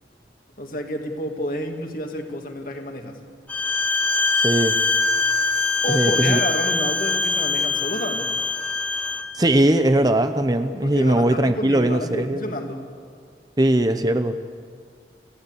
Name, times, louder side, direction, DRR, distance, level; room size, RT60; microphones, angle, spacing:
voice 1, 0.6-3.2 5.8-8.3 10.8-12.8, left 1 dB, 50° left, 3 dB, 2.4 m, -29 dB
Bowed string instrument, 3.5-9.2, left 3 dB, 10° left, 1.1 m, -23 dB
voice 2, 4.4-4.8 5.9-6.4 9.3-12.4 13.6-14.4, right 1 dB, 20° right, 9 dB, 0.7 m, -20 dB
27.5 x 16.0 x 8.2 m, 2.1 s
head